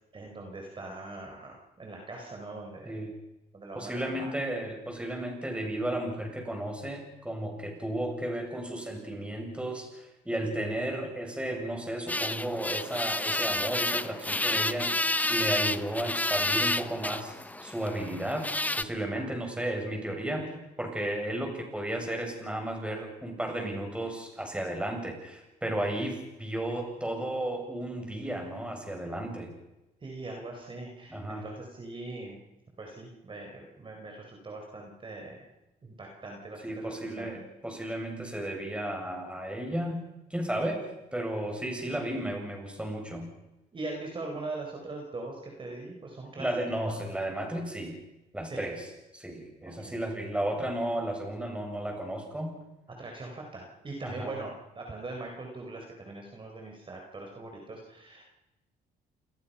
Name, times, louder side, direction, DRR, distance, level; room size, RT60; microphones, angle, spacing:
voice 1, 0.1-2.9 3.5-3.9 4.2-4.3 19.1-19.2 20.4-20.5 25.8-25.9 30.0-32.4 32.8-35.5 35.8-36.6 37.0-37.4 43.7-47.0 48.5-48.6 49.6-50.0 52.9-58.2, right 2 dB, 30° right, 1 dB, 4.9 m, -41 dB
voice 2, 3.7-14.9 15.3-17.4 17.6-18.5 18.8-20.4 20.8-29.5 31.1-31.4 36.6-40.0 40.3-40.8 41.1-43.3 46.4-48.0 48.3-48.9 49.1-52.5 54.0-54.3, right 1 dB, 5° right, 2 dB, 7.6 m, -33 dB
sound 1, 12.1-18.8, left 2 dB, 10° left, 0.9 m, -30 dB
29.5 x 21.0 x 5.8 m, 0.98 s
cardioid pair, 100°, 16 cm